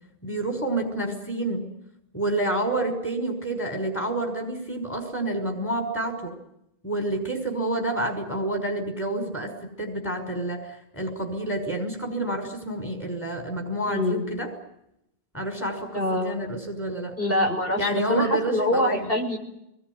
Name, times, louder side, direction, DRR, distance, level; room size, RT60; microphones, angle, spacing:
voice 1, 0.2-1.6 2.1-6.3 6.8-14.5 15.3-17.1 17.8-19.0, right 2 dB, 20° left, 2 dB, 5.6 m, -28 dB
voice 2, 13.8-14.3 15.9-16.4 17.2-19.4, left 1 dB, 65° left, 2 dB, 6.4 m, -25 dB
27.5 x 21.5 x 9.7 m, 0.83 s
omnidirectional pair, 1.0 m